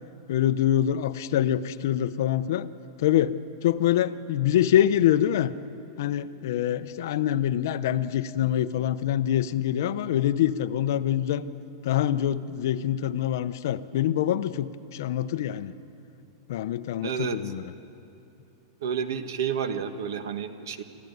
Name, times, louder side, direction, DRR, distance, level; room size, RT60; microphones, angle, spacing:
voice 1, 0.3-2.7 3.0-3.4 3.6-5.5 6.0-11.5 11.8-15.7 16.5-17.7, left 11 dB, 55° left, 12 dB, 0.7 m, -25 dB
voice 2, 17.0-17.4 18.8-20.8, right 7 dB, 70° right, 9 dB, 1.5 m, -30 dB
26.5 x 13.5 x 9.4 m, 3.0 s
supercardioid pair, 180°, 2 cm